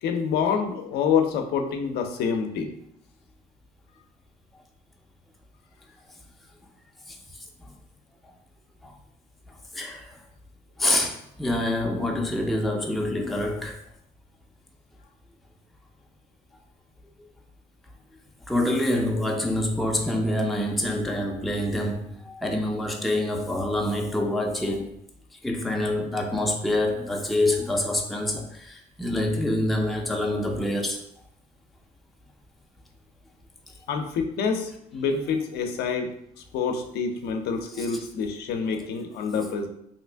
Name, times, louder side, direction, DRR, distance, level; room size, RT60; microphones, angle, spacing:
voice 1, 0.0-2.7 33.9-36.1 36.5-39.7, left 6 dB, 75° left, 0.5 m, -27 dB
voice 2, 9.7-10.1 10.8-13.8 18.5-24.9 25.4-31.0 37.8-37.9, left 1 dB, ahead, 0.4 m, -26 dB
2.8 x 2.5 x 3.3 m
cardioid pair, 110°, 17 cm